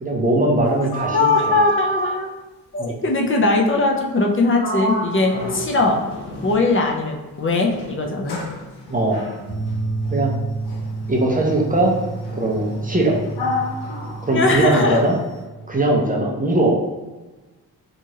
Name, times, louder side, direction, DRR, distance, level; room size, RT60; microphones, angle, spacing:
voice 1, 0.0-1.6 2.8-3.0 5.3-5.5 8.9-9.2 10.1-10.3 11.1-11.9 12.4-13.2 14.2-15.1 15.7-16.8, right 1 dB, 25° right, -1 dB, 0.5 m, -20 dB
Sliding door, 0.7-2.3 4.1-4.3 4.6-7.1 7.7-15.2, equal, 90° left, 0.7 m, -30 dB
voice 2, 1.1-2.3 2.7-6.0 6.4-8.4 14.3-15.0, left 3 dB, 35° left, 0 dB, 0.4 m, -20 dB
sound 1, 9.5-16.4, right 3 dB, 85° right, 0.7 m, -30 dB
2.9 x 2.3 x 2.7 m, 1.2 s
wide cardioid pair, 110°, 38 cm